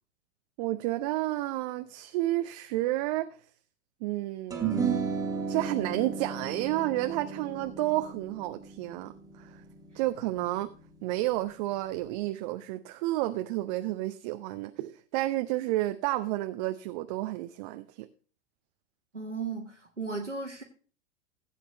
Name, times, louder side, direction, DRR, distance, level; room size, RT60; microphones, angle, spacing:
voice 1, 0.6-3.3 4.0-5.0 5.5-9.6 9.9-10.7 11.0-18.1, right 16 dB, 35° right, 0.6 m, -31 dB
sound 1, 4.5-11.0, right 6 dB, 10° right, 2.3 m, -34 dB
voice 2, 19.1-20.6, right 4 dB, 90° right, 1.3 m, -35 dB
16.0 x 8.4 x 2.9 m
figure-of-eight pair, 90°, 35 cm